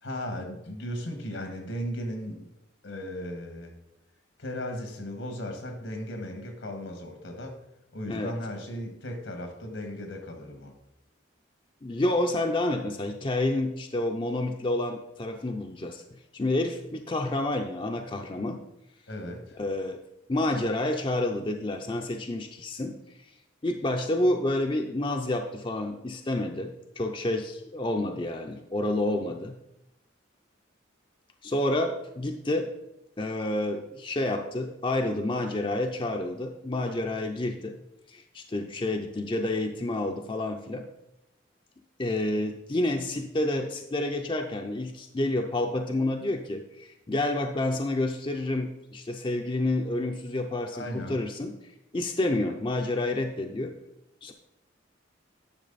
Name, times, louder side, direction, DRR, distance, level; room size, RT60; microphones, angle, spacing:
voice 1, 0.0-2.4 2.8-3.7 4.4-7.6 7.9-10.7 19.1-19.6 50.7-51.2, equal, 80° left, 4 dB, 1.6 m, -36 dB
voice 2, 11.8-16.0 16.3-18.6 19.6-20.0 20.3-23.0 23.6-29.5 31.4-32.7 33.2-37.8 38.1-40.9 42.0-51.5 51.9-53.7 54.2-54.3, left 1 dB, 25° left, 4 dB, 0.5 m, -29 dB
10.5 x 6.1 x 4.0 m, 0.87 s
head